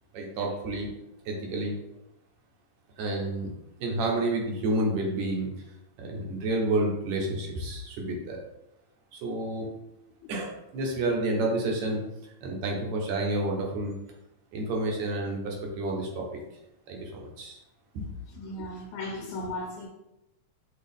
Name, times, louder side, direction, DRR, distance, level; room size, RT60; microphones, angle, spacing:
voice 1, 0.1-0.9 1.3-1.8 3.0-3.5 3.8-5.5 6.0-8.4 9.1-9.7 10.3-12.0 12.4-13.9 14.5-16.3 16.9-17.6 17.9-18.1, right 2 dB, 75° right, 0 dB, 2.1 m, -29 dB
voice 2, 18.4-19.9, left 1 dB, 85° left, -2 dB, 2.1 m, -36 dB
6.2 x 2.3 x 3.5 m, 0.89 s
omnidirectional pair, 3.3 m